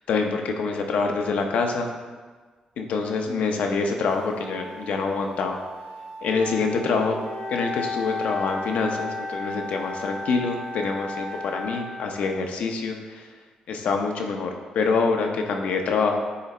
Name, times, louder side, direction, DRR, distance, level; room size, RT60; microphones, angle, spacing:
voice 1, 0.1-1.9 2.8-5.6 6.2-7.2 7.5-13.3 13.7-16.2, left 4 dB, 80° left, 3 dB, 0.8 m, -26 dB
sound 1, 4.1-11.7, right 3 dB, 45° right, 1.9 m, -42 dB
Wind instrument woodwind instrument, 6.2-12.6, left 3 dB, 45° left, 2.0 m, -34 dB
9.7 x 3.3 x 4.2 m, 1.4 s
wide cardioid pair, 170°, 2 cm